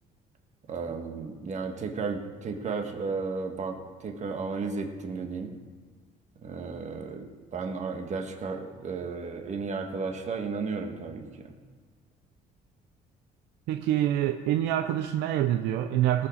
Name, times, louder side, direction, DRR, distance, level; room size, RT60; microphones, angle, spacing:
voice 1, 0.7-5.5 6.4-11.5, right 4 dB, 45° right, 4 dB, 1.6 m, -34 dB
voice 2, 13.7-16.3, right 12 dB, 90° right, 7 dB, 0.6 m, -26 dB
18.0 x 6.3 x 6.5 m, 1.5 s
cardioid pair, 110°, 17 cm